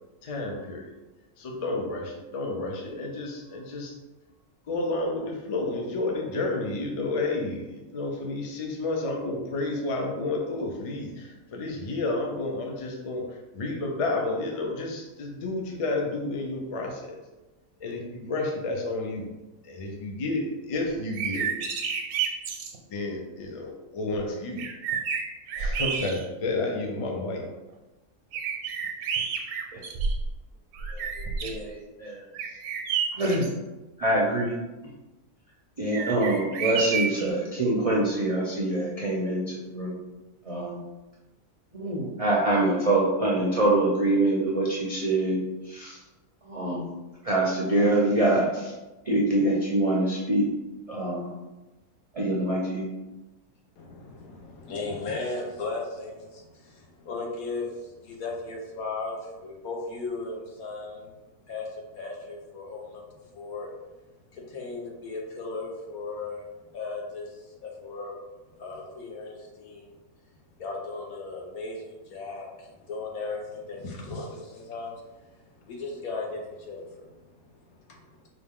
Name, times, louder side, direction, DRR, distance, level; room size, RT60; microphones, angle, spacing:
voice 1, 0.2-0.9 1.4-3.9 4.6-17.2 17.8-19.3 19.6-21.5 22.9-24.6 25.6-27.5, left 2 dB, 50° left, 1 dB, 0.4 m, -31 dB
sound 1, 21.0-22.8 24.1-24.2 24.6-26.5 27.0-27.1 28.3-30.4 30.7-31.6 32.3-33.5 35.9-37.3, right 6 dB, 85° right, 1.1 m, -30 dB
voice 2, 31.4-32.2 33.1-33.4 34.0-34.5 35.8-39.9 40.4-40.8 41.7-45.4 45.6-46.0 46.5-46.9 47.2-48.7 49.0-50.5 50.9-51.3 52.1-52.9, right 2 dB, 50° right, -5 dB, 0.4 m, -25 dB
voice 3, 53.8-61.1 61.5-63.0 63.3-63.7 64.3-66.4 66.7-68.2 68.6-70.0 70.6-75.0 75.3-75.4 75.7-77.4, left 3 dB, 80° left, 0 dB, 1.3 m, -36 dB
4.7 x 2.3 x 3.6 m, 1.1 s
omnidirectional pair, 1.5 m